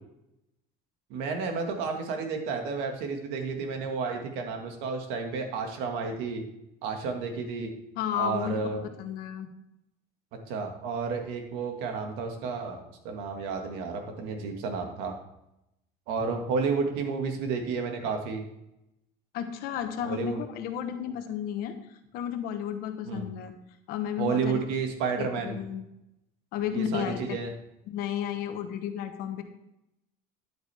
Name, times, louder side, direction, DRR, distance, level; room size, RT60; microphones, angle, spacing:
voice 1, 1.1-6.4 6.8-7.7 8.1-8.8 10.5-15.2 16.1-18.4 20.0-20.4 23.1-23.3 24.2-25.6 26.6-27.5, right 5 dB, 75° right, 4 dB, 1.9 m, -31 dB
voice 2, 8.0-8.7 9.0-9.5 19.3-21.7 22.1-23.5 23.9-24.6 25.2-25.8 26.5-27.4 27.9-29.4, left 9 dB, 55° left, 7 dB, 1.2 m, -32 dB
11.0 x 8.8 x 3.5 m, 0.85 s
cardioid pair, 180°, 18 cm